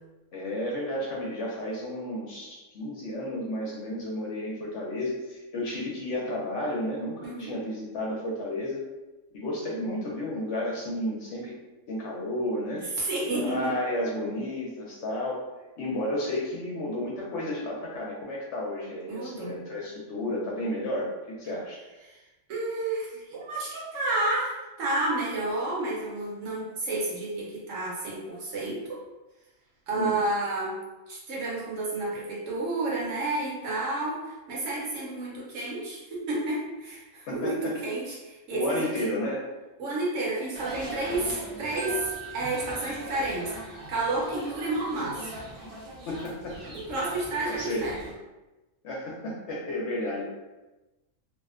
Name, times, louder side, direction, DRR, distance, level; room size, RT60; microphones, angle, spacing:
voice 1, 0.3-8.8 9.3-11.6 11.9-12.8 13.3-15.4 15.8-21.8 29.9-30.1 37.3-37.6 38.5-39.4 46.1-46.6 47.5-47.9 48.8-50.2, left 1 dB, 65° left, -4 dB, 0.8 m, -32 dB
voice 2, 7.2-7.6 12.8-13.7 19.1-19.6 22.1-22.2 22.5-29.0 29.9-30.8 31.1-38.9 39.8-45.3 46.7-48.1, right 2 dB, 70° right, -5 dB, 1.0 m, -31 dB
sound 1, 40.5-48.1, right 1 dB, 55° right, 0.7 m, -42 dB
Marimba xylophone, 41.8-43.8, right 10 dB, 30° left, 0.7 m, -42 dB
2.7 x 2.1 x 2.4 m, 1.1 s
omnidirectional pair, 1.4 m